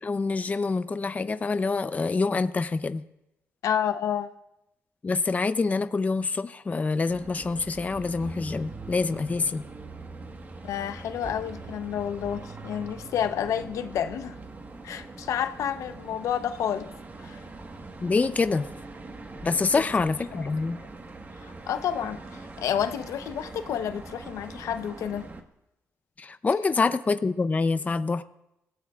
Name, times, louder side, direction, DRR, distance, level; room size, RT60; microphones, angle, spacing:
voice 1, 0.0-3.0 5.0-9.6 18.0-18.7 19.4-20.8 26.2-28.2, left 4 dB, 30° left, 0.6 m, -26 dB
voice 2, 3.6-4.3 10.6-14.4 14.8-16.9 17.2-17.4 19.7-19.8 20.3-20.4 21.4-25.3, left 9 dB, 80° left, 0.8 m, -30 dB
sound 1, 7.1-25.4, right 3 dB, 35° right, 1.4 m, -42 dB
27.0 x 16.0 x 2.4 m
cardioid pair, 95°, 5 cm